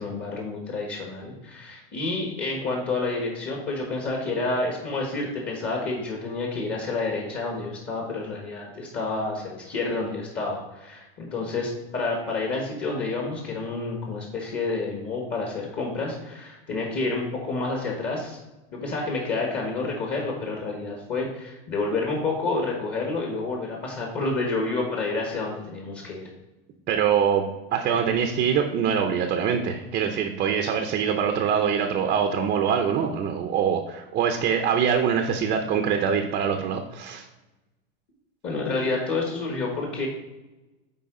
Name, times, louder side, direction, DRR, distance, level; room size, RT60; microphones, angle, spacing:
voice 1, 0.0-18.4 18.7-26.3 38.4-40.1, left 3 dB, 35° left, -1 dB, 1.4 m, -29 dB
voice 2, 26.9-27.5 27.7-37.2, right 7 dB, 30° right, 5 dB, 0.5 m, -24 dB
9.5 x 3.9 x 3.8 m, 1.1 s
supercardioid pair, 140°, 32 cm